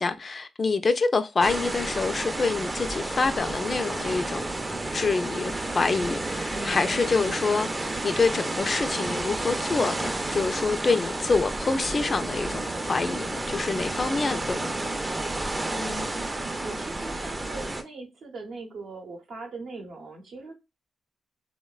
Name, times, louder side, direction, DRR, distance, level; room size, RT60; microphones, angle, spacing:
voice 1, 0.0-4.5 4.9-7.7 8.0-12.6 12.9-14.7, left 4 dB, 45° left, 0.3 m, -26 dB
sound 1, 1.4-17.8, right 2 dB, 25° right, 0.4 m, -31 dB
voice 2, 6.5-7.0 15.7-20.5, right 2 dB, 70° right, 0.7 m, -40 dB
2.8 x 2.1 x 2.3 m
hypercardioid pair, 40°, 0 cm